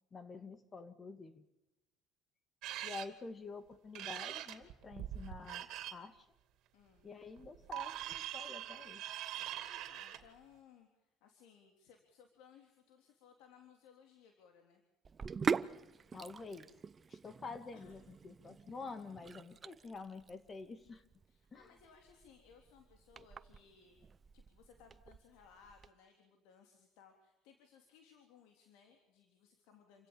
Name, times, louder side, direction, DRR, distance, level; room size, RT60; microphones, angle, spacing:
voice 1, 0.1-1.5 2.8-6.3 7.0-9.0 16.1-16.7 17.1-21.0 21.5-21.7, left 4 dB, 25° left, 10 dB, 2.2 m, -48 dB
sound 1, 2.6-3.1 3.9-5.9 7.4-10.2, right 12 dB, 65° right, 2.7 m, -43 dB
voice 2, 6.7-7.1 9.9-14.8 17.7-18.0 21.3-24.0 24.3-30.1, left 7 dB, 90° left, 4 dB, 3.5 m, -63 dB
Sink (filling or washing), 15.0-25.9, right 5 dB, 25° right, 0.7 m, -43 dB
28.5 x 16.5 x 7.2 m, 0.95 s
cardioid pair, 130°, 0 cm